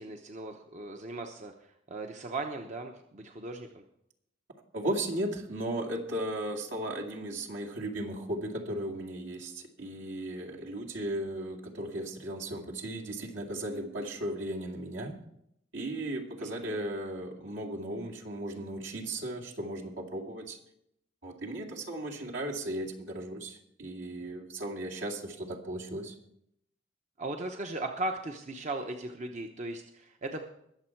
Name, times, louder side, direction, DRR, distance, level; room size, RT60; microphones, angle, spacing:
voice 1, 0.0-1.5 1.9-3.8 16.4-16.8 27.2-30.4, right 2 dB, 40° right, 4 dB, 0.9 m, -37 dB
voice 2, 4.7-15.2 15.7-20.6 21.2-26.1, right 1 dB, 70° right, -1 dB, 2.3 m, -36 dB
21.5 x 7.2 x 4.6 m, 0.75 s
head